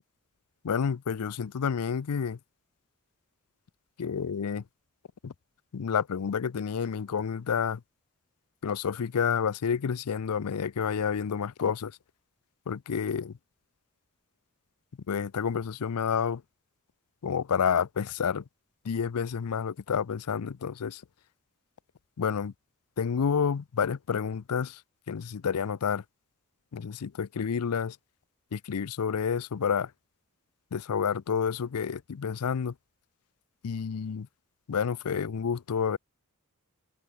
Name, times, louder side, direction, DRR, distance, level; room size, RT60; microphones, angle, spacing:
voice 1, 0.6-2.4 4.0-4.6 5.2-5.3 5.7-7.8 8.6-12.0 12.7-13.3 15.1-16.4 17.2-18.4 18.8-21.0 22.2-22.5 23.0-24.8 25.1-26.0 26.7-28.0 28.5-29.9 30.7-32.7 33.6-34.3 34.7-36.0, left 6 dB, 85° left, 0.5 m, -29 dB
head